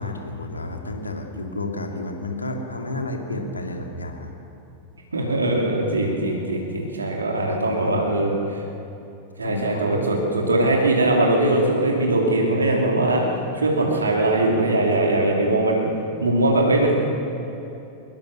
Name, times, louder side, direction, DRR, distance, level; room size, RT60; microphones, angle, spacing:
voice 1, 0.0-4.3 7.5-7.6 7.9-8.1 9.4-10.1, left 2 dB, 80° left, 2 dB, 2.9 m, -31 dB
voice 2, 5.1-8.6 9.4-13.2 13.5-15.9 16.2-16.9, right 2 dB, 75° right, -1 dB, 3.0 m, -21 dB
23.0 x 21.5 x 6.5 m, 2.8 s
figure-of-eight pair, 90°, 0 cm